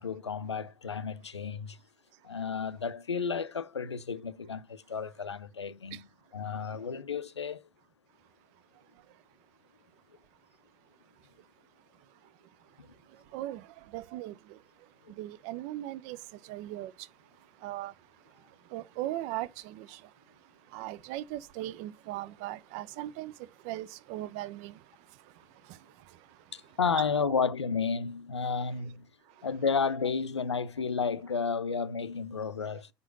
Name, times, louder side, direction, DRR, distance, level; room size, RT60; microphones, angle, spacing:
voice 1, 0.0-1.8 2.2-6.1 6.3-7.7 26.5-29.1 29.4-32.9, left 5 dB, 90° left, 0.4 m, -32 dB
voice 2, 13.1-26.5 27.2-27.3 29.3-29.5, right 15 dB, 55° right, 0.5 m, -40 dB
5.2 x 4.8 x 6.1 m
figure-of-eight pair, 65°, 14 cm